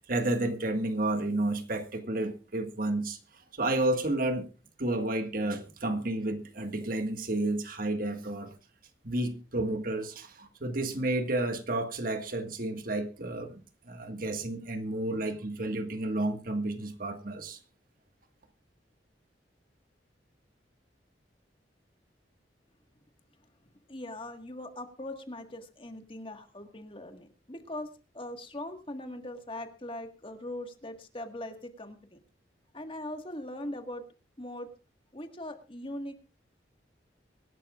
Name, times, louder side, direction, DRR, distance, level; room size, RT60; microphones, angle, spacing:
voice 1, 0.0-3.2 3.5-4.5 4.8-8.5 9.0-13.6 13.9-17.6, right 2 dB, 50° right, 1.7 m, -31 dB
voice 2, 23.9-27.9 28.1-32.2 32.7-34.1 34.4-34.7 35.1-36.1, left 1 dB, 30° left, 1.7 m, -40 dB
24.0 x 12.0 x 2.4 m
head